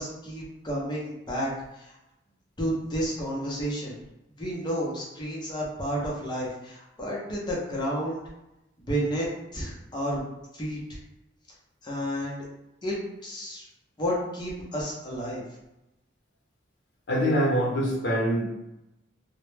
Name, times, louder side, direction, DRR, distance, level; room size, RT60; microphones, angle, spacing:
voice 1, 0.0-1.9 2.6-4.0 4.4-8.2 8.9-9.3 9.5-10.2 10.5-10.8 11.8-12.4 12.8-13.0 13.2-13.7 14.0-15.4, equal, 25° left, -4 dB, 0.6 m, -31 dB
voice 2, 17.1-18.4, equal, 60° left, -3 dB, 0.8 m, -24 dB
2.1 x 2.0 x 3.1 m, 0.91 s
head